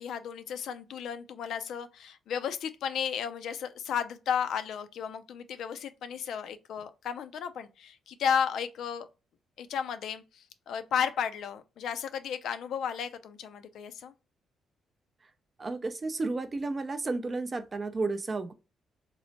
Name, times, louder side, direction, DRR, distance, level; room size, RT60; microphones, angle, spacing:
voice 1, 0.0-9.1 9.6-14.1, left 7 dB, 75° left, 0.4 m, -33 dB
voice 2, 15.6-18.5, right 3 dB, 30° right, 0.4 m, -32 dB
3.0 x 2.0 x 2.7 m
cardioid pair, 90°, 0 cm